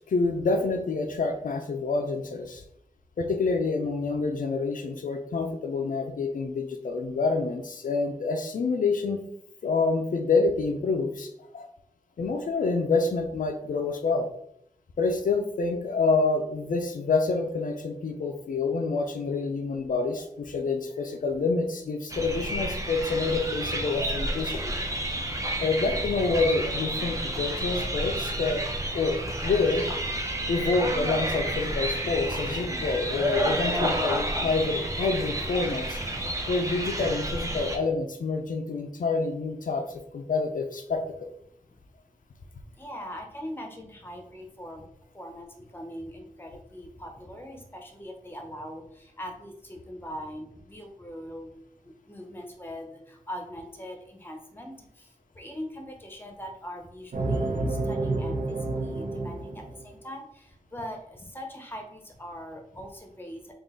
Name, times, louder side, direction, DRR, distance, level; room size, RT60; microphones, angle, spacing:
voice 1, 0.0-2.6 3.2-9.2 9.6-11.7 12.2-14.3 15.0-24.7 25.6-28.7 28.9-29.8 30.5-36.0 36.5-41.0, left 3 dB, 75° left, 4 dB, 0.5 m, -27 dB
sound 1, 22.1-37.8, right 1 dB, 20° right, 0.7 m, -30 dB
voice 2, 42.8-44.8 45.1-51.5 51.8-63.5, equal, 15° left, 3 dB, 0.8 m, -41 dB
sound 2, 57.1-59.9, right 2 dB, 70° right, 0.7 m, -29 dB
3.8 x 2.4 x 3.7 m, 0.72 s
wide cardioid pair, 75°, 14 cm